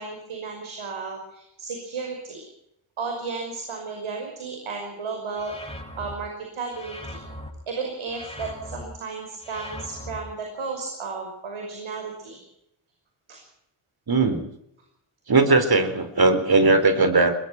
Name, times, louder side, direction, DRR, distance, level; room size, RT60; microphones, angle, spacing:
voice 1, 0.0-2.4 3.0-5.5 6.0-7.2 7.7-12.4 13.3-13.4, right 4 dB, 75° right, 3 dB, 5.8 m, -33 dB
sound 1, 5.4-6.1 6.7-7.5 8.1-8.8 9.4-10.2, left 1 dB, 10° left, 7.3 m, -39 dB
voice 2, 14.1-14.4 15.3-17.4, right 3 dB, 45° right, 10 dB, 4.2 m, -19 dB
22.0 x 20.5 x 6.1 m, 0.82 s
cardioid pair, 55°, 50 cm